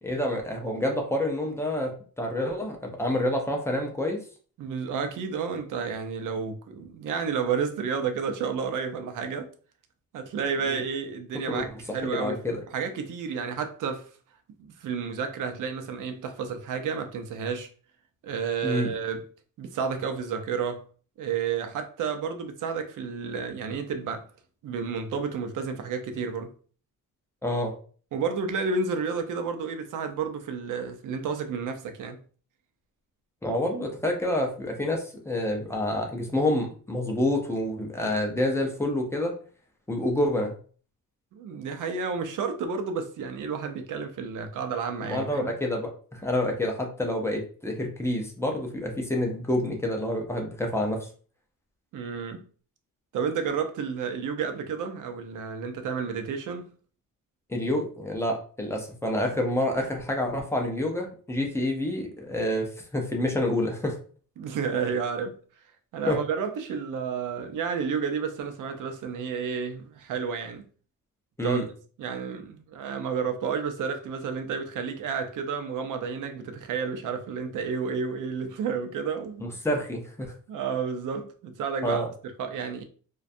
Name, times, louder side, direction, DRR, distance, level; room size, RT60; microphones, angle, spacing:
voice 1, 0.0-4.2 10.7-10.8 11.5-12.6 18.6-18.9 27.4-27.7 33.4-39.3 39.9-40.6 45.1-51.1 57.5-64.0 66.1-66.2 71.4-71.6 79.4-80.3 81.8-82.1, left 1 dB, 10° left, 0.4 m, -28 dB
voice 2, 4.6-9.5 10.1-12.4 12.7-14.1 14.6-17.7 18.2-19.2 19.6-20.8 21.2-24.3 24.6-26.5 28.1-32.2 41.3-45.5 51.9-52.5 53.1-56.7 64.4-65.4 65.9-70.6 71.4-71.6 72.0-79.4 80.5-82.0 82.4-82.8, right 6 dB, 65° right, 0.5 m, -31 dB
2.4 x 2.2 x 2.5 m
cardioid pair, 150°, 33 cm